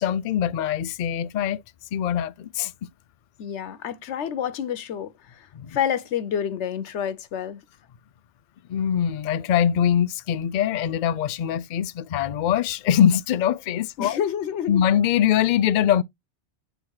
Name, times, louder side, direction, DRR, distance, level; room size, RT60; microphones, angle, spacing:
voice 1, 0.0-1.6 1.9-2.7 5.5-5.8 8.7-14.2 14.7-16.0, left 9 dB, 60° left, 0.5 m, -23 dB
voice 2, 3.4-7.6 14.0-14.8, left 9 dB, 90° left, 1.0 m, -29 dB
7.9 x 2.9 x 4.6 m
omnidirectional pair, 1.1 m